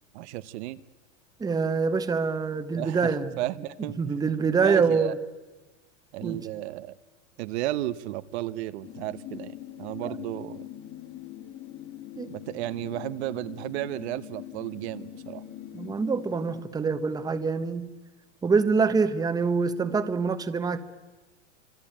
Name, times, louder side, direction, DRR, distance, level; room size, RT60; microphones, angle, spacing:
voice 1, 0.1-0.8 2.7-4.3 4.6-5.1 6.1-6.9 7.4-10.6 12.3-15.4, right 15 dB, 60° right, 14 dB, 1.1 m, -33 dB
voice 2, 1.4-3.3 4.0-5.2 6.2-6.5 12.1-12.3 15.7-17.9 18.4-20.8, right 5 dB, 10° right, 11 dB, 1.1 m, -25 dB
sound 1, 8.8-16.6, left 12 dB, 30° left, 1.6 m, -42 dB
26.0 x 25.5 x 8.9 m, 1.2 s
supercardioid pair, 140°, 36 cm